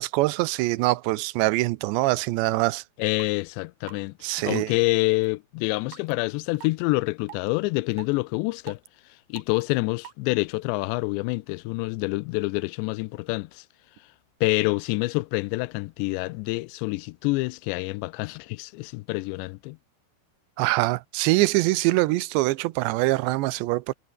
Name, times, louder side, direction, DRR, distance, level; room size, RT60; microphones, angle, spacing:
voice 1, 0.0-2.8 4.2-4.7 20.6-23.9, right 20 dB, 85° right, 2.9 m, -24 dB
sound 1, 2.8-2.9 3.2-3.3 3.9-4.0 4.6-4.7 5.2-5.3 5.9-6.1 6.6-6.7 7.3-7.5 7.9-8.1 8.7-8.9 9.4-9.6 10.0-10.1, right 13 dB, 65° right, 2.5 m, -42 dB
voice 2, 3.0-8.8 9.3-13.6 14.4-19.8, left 23 dB, 90° left, 2.8 m, -27 dB
omnidirectional pair, 5.0 m